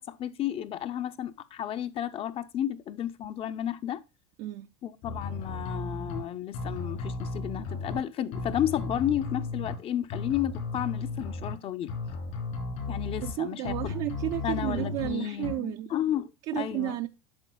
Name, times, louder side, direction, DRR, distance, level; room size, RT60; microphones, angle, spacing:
voice 1, 0.0-4.0 4.8-11.9 12.9-13.9 14.4-17.0, left 11 dB, 40° left, 0.6 m, -32 dB
sound 1, 5.0-6.2 6.5-8.0 8.3-9.8 10.1-11.5 11.9-13.3 13.7-15.1 15.4-15.5, left 3 dB, 70° left, 3.3 m, -35 dB
voice 2, 13.2-15.9 16.5-17.1, right 15 dB, 55° right, 0.4 m, -32 dB
8.7 x 6.5 x 2.3 m
supercardioid pair, 105°, 15 cm